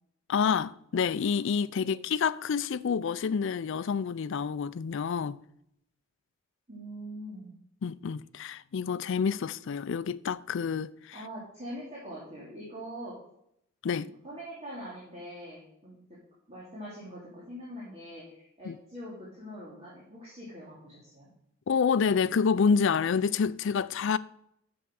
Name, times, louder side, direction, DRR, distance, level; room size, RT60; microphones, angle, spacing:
voice 1, 0.3-5.4 7.8-11.2 13.8-14.1 18.7-18.8 21.7-24.2, left 6 dB, 60° left, 0.4 m, -28 dB
voice 2, 6.7-7.5 11.1-13.2 13.9-16.0 16.5-21.3, equal, 30° right, 2.6 m, -43 dB
7.6 x 7.0 x 6.3 m
head